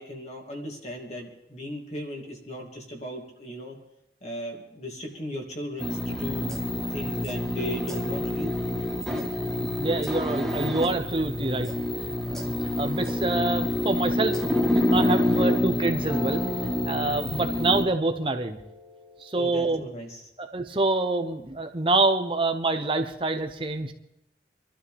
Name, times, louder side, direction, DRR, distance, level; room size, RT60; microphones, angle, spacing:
voice 1, 0.0-3.8 4.2-6.6 6.9-8.5 19.4-20.3, equal, 40° left, 1 dB, 2.6 m, -37 dB
sound 1, 5.8-17.8, left 1 dB, 5° left, 1.5 m, -27 dB
voice 2, 9.8-11.7 12.3-14.4 14.7-16.4 16.8-18.6 19.2-19.8 20.4-23.9, right 2 dB, 30° right, 7 dB, 0.8 m, -26 dB
sound 2, 15.0-20.0, left 1 dB, 20° left, 2.6 m, -41 dB
26.5 x 12.5 x 3.5 m, 0.81 s
head